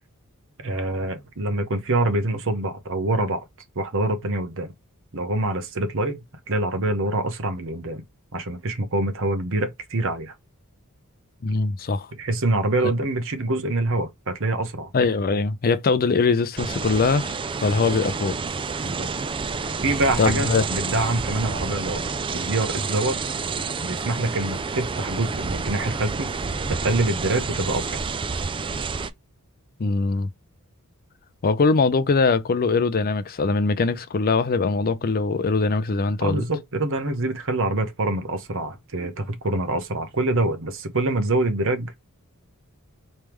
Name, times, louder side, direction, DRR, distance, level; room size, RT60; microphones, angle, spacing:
voice 1, 0.6-3.4 3.8-4.7 5.1-6.2 6.5-8.0 8.3-10.3 12.2-14.9 18.8-19.1 19.8-22.0 22.3-23.2 23.8-26.3 26.7-27.9 36.2-42.0, right 2 dB, 60° right, 1.0 m, -25 dB
voice 2, 11.4-12.1 14.9-18.4 20.2-20.7 29.8-30.3 31.4-36.4, left 4 dB, 40° left, 0.5 m, -22 dB
sound 1, 16.6-29.1, right 4 dB, 25° right, 0.3 m, -29 dB
4.5 x 3.3 x 3.5 m
head